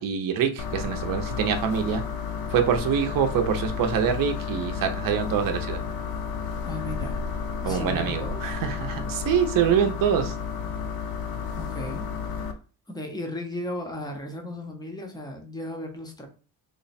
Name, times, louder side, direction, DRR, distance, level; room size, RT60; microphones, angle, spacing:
voice 1, 0.0-2.0 2.5-5.8 7.6-10.3, right 8 dB, 50° right, 6 dB, 0.6 m, -25 dB
sound 1, 0.6-12.5, left 6 dB, 60° left, 0.5 m, -32 dB
voice 2, 6.6-7.2 7.6-8.4 11.5-12.0 12.9-16.3, left 1 dB, 10° left, 3 dB, 0.5 m, -35 dB
3.2 x 2.1 x 4.0 m, 0.36 s
cardioid pair, 160°, 42 cm